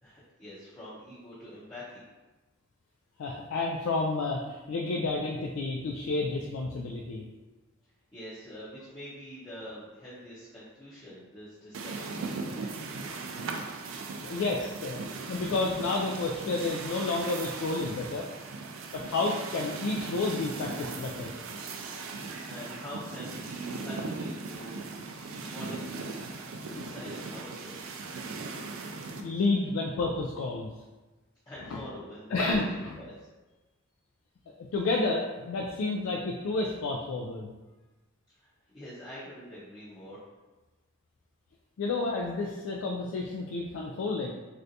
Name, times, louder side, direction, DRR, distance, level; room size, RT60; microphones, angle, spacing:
voice 1, 0.0-2.0 8.1-12.9 22.5-24.7 25.0-25.2 25.5-26.2 26.6-27.9 31.5-33.1 38.4-40.2, equal, 20° left, -11 dB, 0.6 m, -45 dB
voice 2, 3.2-7.2 14.2-18.3 18.9-21.3 26.7-26.9 29.0-30.7 31.7-31.8 32.3-33.0 34.6-37.5 41.8-44.3, left 3 dB, 75° left, -1 dB, 0.3 m, -30 dB
sound 1, 11.7-29.2, right 4 dB, 80° right, 0.4 m, -38 dB
3.3 x 2.6 x 2.7 m, 1.2 s
head